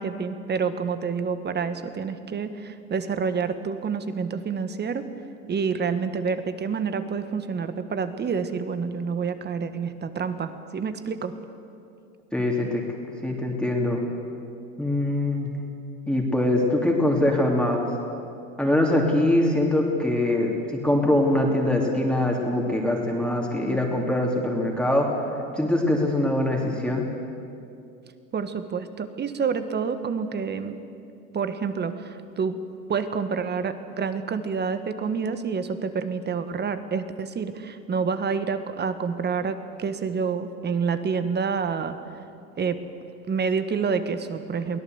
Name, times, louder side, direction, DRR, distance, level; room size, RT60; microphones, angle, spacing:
voice 1, 0.0-5.1 5.5-11.3 28.3-30.8 31.3-32.6 32.9-42.0 42.6-42.8 43.3-44.8, right 5 dB, 25° right, 10 dB, 1.5 m, -28 dB
voice 2, 12.3-12.8 13.2-14.0 14.8-15.5 16.1-17.9 18.6-25.2 25.5-27.1, left 1 dB, ahead, -1 dB, 3.0 m, -23 dB
23.0 x 17.0 x 8.0 m, 2.5 s
hypercardioid pair, 100°, 43 cm